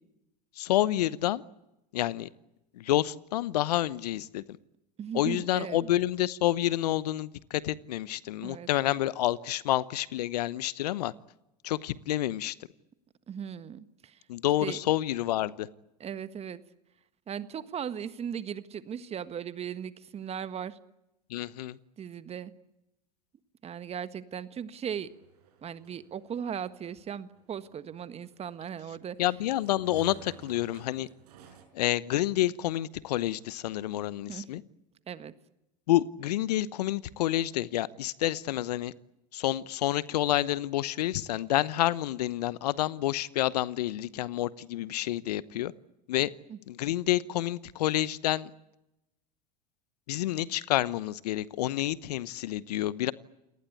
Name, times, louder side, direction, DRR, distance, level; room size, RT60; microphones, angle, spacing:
voice 1, 0.6-1.4 1.9-2.3 2.7-4.4 5.1-11.1 11.6-12.5 14.3-15.7 21.3-21.8 29.2-31.1 31.7-34.6 35.9-38.9 39.3-45.7 46.1-46.3 46.7-48.5 50.1-53.1, left 14 dB, 70° left, 19 dB, 0.9 m, -29 dB
voice 2, 5.0-5.9 8.4-8.7 13.3-14.2 14.6-14.8 16.0-16.6 17.3-20.8 22.0-22.5 23.6-25.1 25.6-29.2 34.3-34.5 35.1-35.3 46.5-46.6, right 8 dB, 30° right, 13 dB, 1.5 m, -37 dB
sound 1, 24.9-31.7, right 10 dB, 70° right, 5.7 m, -55 dB
28.5 x 19.0 x 8.4 m, 0.90 s
hypercardioid pair, 90°, 21 cm